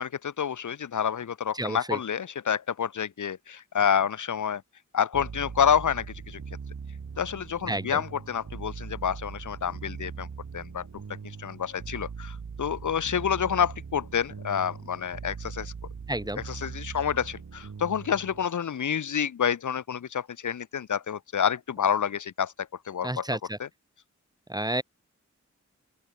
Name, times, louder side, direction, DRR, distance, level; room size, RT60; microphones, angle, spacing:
voice 1, 0.0-4.6 4.9-6.4 7.2-10.3 10.5-10.9 11.4-15.7 16.4-23.3 23.6-23.7, left 8 dB, 80° left, 0.9 m, -28 dB
voice 2, 1.6-2.0 7.7-8.0 16.1-16.4 23.0-23.6 24.5-24.8, right 1 dB, 15° right, 3.3 m, -30 dB
sound 1, 5.1-18.5, right 5 dB, 75° right, 4.4 m, -40 dB
open air
wide cardioid pair, 80°, 30 cm